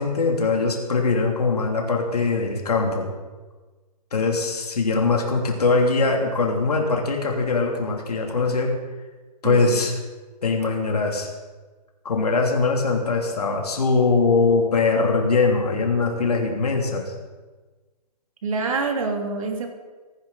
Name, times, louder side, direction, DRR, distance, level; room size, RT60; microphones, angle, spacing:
voice 1, 0.0-3.1 4.1-8.7 9.4-9.9 10.4-11.3 12.0-17.1, left 3 dB, 65° left, 1 dB, 2.8 m, -22 dB
voice 2, 18.4-19.7, right 4 dB, 55° right, 3 dB, 2.8 m, -26 dB
25.5 x 10.5 x 4.0 m, 1.3 s
figure-of-eight pair, 125°, 21 cm